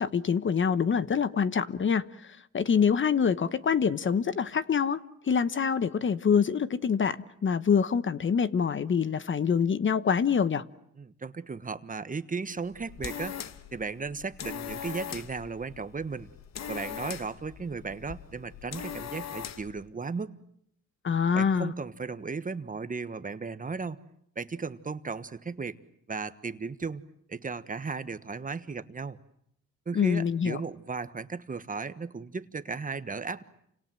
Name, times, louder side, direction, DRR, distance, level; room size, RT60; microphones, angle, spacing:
voice 1, 0.0-10.6 21.0-21.7 29.9-30.6, left 6 dB, 40° left, 1.1 m, -26 dB
voice 2, 11.0-13.4 13.7-16.3 16.7-20.3 21.3-24.0 24.3-25.8 26.1-27.0 27.3-29.2 29.9-33.4, right 4 dB, 25° right, 1.3 m, -35 dB
sound 1, 12.6-19.8, left 9 dB, 60° left, 1.4 m, -40 dB
29.5 x 26.0 x 7.7 m
cardioid pair, 90°, 30 cm